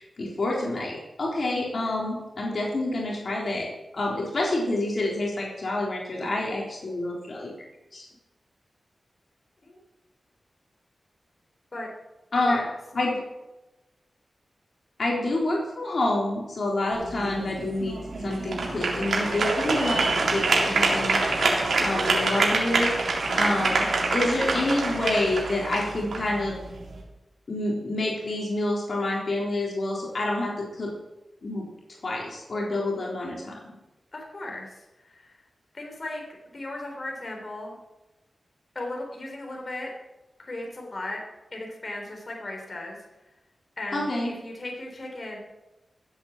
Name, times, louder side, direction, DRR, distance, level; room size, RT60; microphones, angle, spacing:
voice 1, 0.0-3.7 3.9-7.7 7.9-8.1 12.3-12.6 12.9-13.1 15.0-22.9 23.3-23.9 24.1-26.5 27.5-30.9 31.4-31.7 32.0-33.6 43.9-44.3, left 2 dB, 60° left, -2 dB, 3.6 m, -28 dB
sound 1, 16.9-27.0, right 3 dB, 80° right, 3.6 m, -26 dB
voice 2, 34.1-35.4 35.7-36.2 36.5-37.8 38.8-39.9 40.4-41.2 41.5-43.0 43.8-45.4, left 2 dB, 40° left, 0 dB, 3.7 m, -36 dB
15.0 x 8.3 x 7.4 m, 1.0 s
wide cardioid pair, 75°, 0 cm